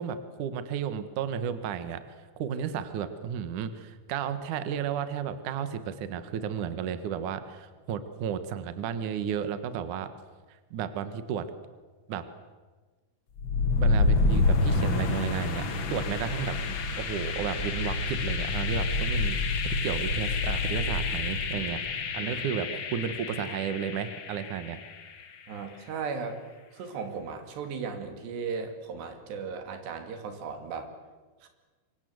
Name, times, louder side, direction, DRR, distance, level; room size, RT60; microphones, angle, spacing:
voice 1, 0.0-2.0 2.4-10.1 10.7-11.5 12.1-12.2 13.8-15.7 15.9-21.8 22.1-24.8, right 8 dB, 60° right, 10 dB, 2.5 m, -33 dB
sound 1, 13.4-25.2, left 3 dB, 60° left, 1.3 m, -28 dB
voice 2, 25.5-26.4 26.7-30.9 31.4-31.5, right 5 dB, 90° right, 6 dB, 4.7 m, -36 dB
26.0 x 24.5 x 8.0 m, 1.3 s
omnidirectional pair, 4.7 m